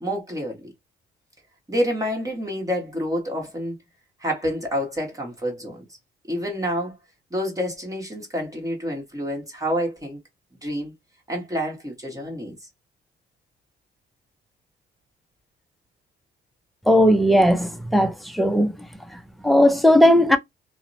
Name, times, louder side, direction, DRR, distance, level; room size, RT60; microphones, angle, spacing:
voice 1, 0.0-0.7 1.7-3.8 4.2-5.9 6.3-7.0 7.3-10.2 10.6-10.9 11.3-12.6, equal, 15° right, 1.3 m, -28 dB
voice 2, 16.9-18.8 19.1-20.4, equal, ahead, 0.5 m, -17 dB
2.7 x 2.1 x 2.6 m
cardioid pair, 90°, 20 cm